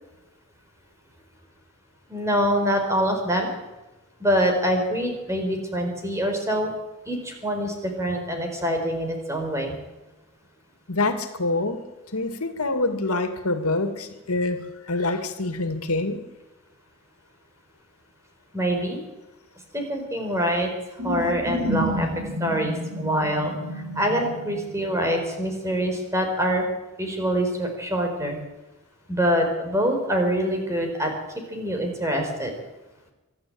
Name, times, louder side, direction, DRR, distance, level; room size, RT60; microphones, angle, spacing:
voice 1, 2.1-3.5 4.2-6.7 7.1-9.8 18.5-19.0 19.7-20.7 21.0-23.5 23.9-26.6 27.0-28.4 29.1-31.1 31.5-32.5, equal, 15° right, 3 dB, 4.5 m, -25 dB
voice 2, 10.9-11.8 12.1-14.6 14.9-16.2, left 2 dB, 80° left, 8 dB, 2.4 m, -25 dB
sound 1, 21.0-25.5, equal, 60° right, 5.2 m, -30 dB
25.0 x 11.5 x 8.8 m, 1.1 s
head